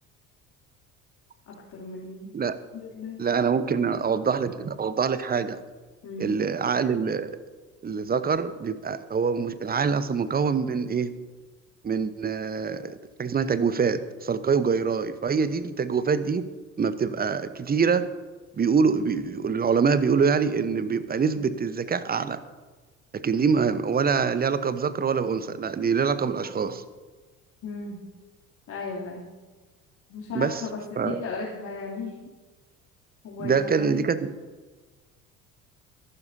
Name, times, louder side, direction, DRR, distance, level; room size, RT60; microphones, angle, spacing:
voice 1, 1.5-2.3 2.7-3.2 6.0-6.3 27.6-28.0 28.7-29.2 30.1-32.3 33.2-34.1, left 4 dB, 45° left, -6 dB, 2.9 m, -36 dB
voice 2, 3.2-5.6 6.2-7.4 7.8-11.1 11.8-16.4 16.8-18.1 18.6-22.4 23.1-26.8 30.3-30.6 31.0-31.2 33.4-34.3, right 5 dB, 20° right, 13 dB, 0.9 m, -25 dB
24.5 x 12.0 x 2.8 m, 1.3 s
figure-of-eight pair, 60°, 42 cm